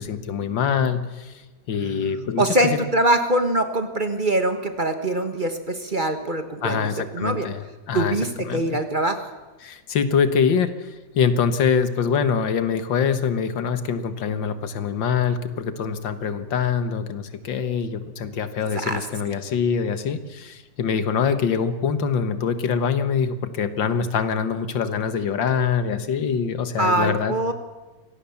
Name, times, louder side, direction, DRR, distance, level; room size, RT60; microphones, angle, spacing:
voice 1, 0.0-1.3 1.7-2.8 6.6-8.2 8.4-8.8 9.6-27.5, left 6 dB, 85° left, 11 dB, 2.1 m, -24 dB
voice 2, 2.4-7.5 7.9-9.2 18.7-19.0 26.8-27.5, right 1 dB, 30° right, 8 dB, 1.5 m, -23 dB
24.5 x 17.5 x 7.1 m, 1.2 s
omnidirectional pair, 2.0 m